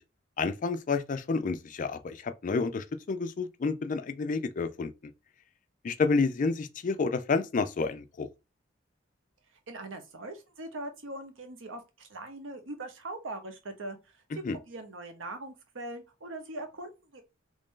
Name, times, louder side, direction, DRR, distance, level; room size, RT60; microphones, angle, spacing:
voice 1, 0.4-4.9 5.8-8.3 14.3-14.6, left 4 dB, 40° left, 0.4 m, -29 dB
voice 2, 9.7-14.2 14.5-17.2, right 2 dB, 85° right, 0.8 m, -41 dB
3.2 x 2.6 x 3.6 m
head